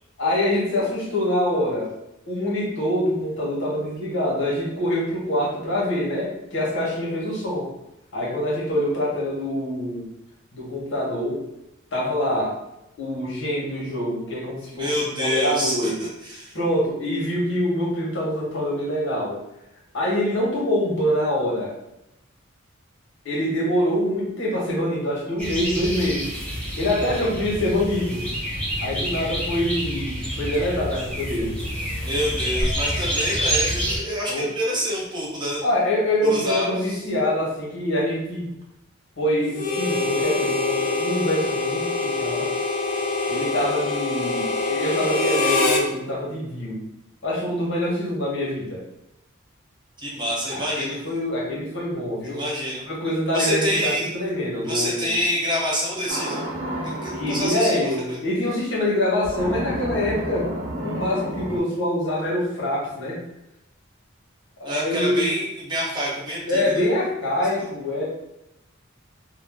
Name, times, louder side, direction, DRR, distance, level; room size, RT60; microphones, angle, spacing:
voice 1, 0.2-1.9 2.3-7.7 8.1-10.1 10.5-11.4 11.9-12.6 13.0-15.9 16.5-19.4 19.9-21.7 23.2-26.3 26.8-28.3 28.8-31.6 34.3-34.4 35.6-38.5 39.2-42.5 43.3-46.8 47.2-48.8 50.5-52.4 52.8-55.1 57.2-60.5 60.8-63.2 64.6-65.3 66.5-68.0, left 1 dB, 60° left, -5 dB, 1.0 m, -25 dB
voice 2, 14.7-16.6 32.0-35.6 36.2-37.0 50.0-51.0 52.2-52.8 53.3-54.1 54.6-56.5 56.8-58.2 64.6-66.8 67.6-67.7, equal, 20° right, -4 dB, 0.6 m, -27 dB
sound 1, 25.4-34.0, equal, 5° left, 0.9 m, -28 dB
Harmonica, 39.5-45.9, left 3 dB, 40° left, 0.4 m, -24 dB
sound 2, 56.1-57.5 59.2-61.6, right 1 dB, 70° right, 0.9 m, -30 dB
2.5 x 2.0 x 3.3 m, 0.88 s
head